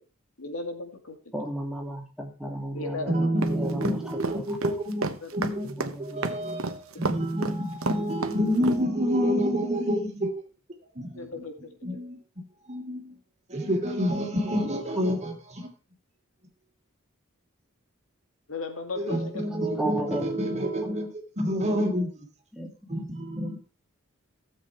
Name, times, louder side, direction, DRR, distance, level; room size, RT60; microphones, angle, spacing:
voice 1, 0.4-1.2 2.7-3.3 5.1-5.3 11.1-12.0 18.5-19.5, left 3 dB, 85° left, 6 dB, 2.3 m, -36 dB
voice 2, 1.3-4.6 5.6-6.4 19.8-20.7 22.5-22.7 23.4-23.5, right 1 dB, 5° right, 0 dB, 2.6 m, -34 dB
voice 3, 3.1-10.3 11.0-11.3 11.8-12.2 12.7-13.1 13.5-15.7 19.0-21.1 21.4-22.1 22.9-23.6, equal, 30° right, 3 dB, 2.7 m, -28 dB
sound 1, 3.4-8.8, right 3 dB, 80° right, 1.1 m, -30 dB
15.0 x 7.7 x 4.7 m, 0.34 s
head